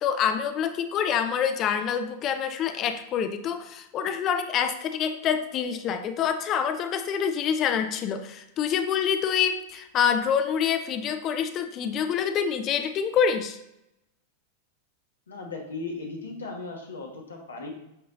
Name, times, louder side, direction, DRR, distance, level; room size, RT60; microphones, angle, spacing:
voice 1, 0.0-13.6, left 7 dB, 35° left, 8 dB, 0.6 m, -26 dB
voice 2, 15.3-17.7, left 3 dB, 70° left, 1 dB, 1.5 m, -37 dB
8.7 x 5.6 x 2.7 m, 0.86 s
figure-of-eight pair, 90°, 0 cm